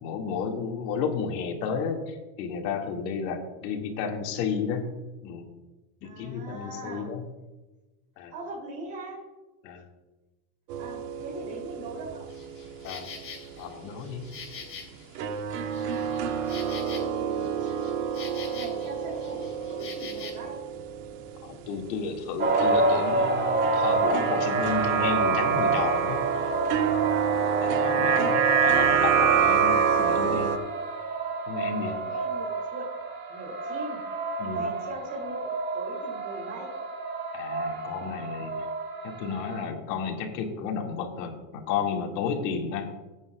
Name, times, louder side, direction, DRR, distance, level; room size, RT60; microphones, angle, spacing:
voice 1, 0.0-4.8 5.2-5.5 6.2-7.2 8.2-8.3 9.6-9.8 12.8-13.1 13.6-14.2 21.4-26.5 27.6-30.5 31.5-32.0 34.4-34.7 37.3-38.7 39.0-42.9, left 6 dB, 85° left, 2 dB, 2.3 m, -32 dB
voice 2, 6.0-7.1 8.3-9.2 10.8-12.3 16.4-17.9 18.5-20.6 27.7-27.9 31.8-32.9 33.3-34.0 34.5-36.7, right 2 dB, 55° right, -2 dB, 3.3 m, -41 dB
sound 1, 10.7-13.2 13.5-13.6 15.2-21.7 22.5-30.6, right 7 dB, 75° right, 1.3 m, -27 dB
Insect, 12.3-20.3, left 5 dB, 25° left, 2.7 m, -45 dB
sound 2, 22.4-39.7, right 3 dB, 20° right, 1.7 m, -29 dB
15.5 x 9.4 x 2.4 m, 1.1 s
cardioid pair, 150°, 48 cm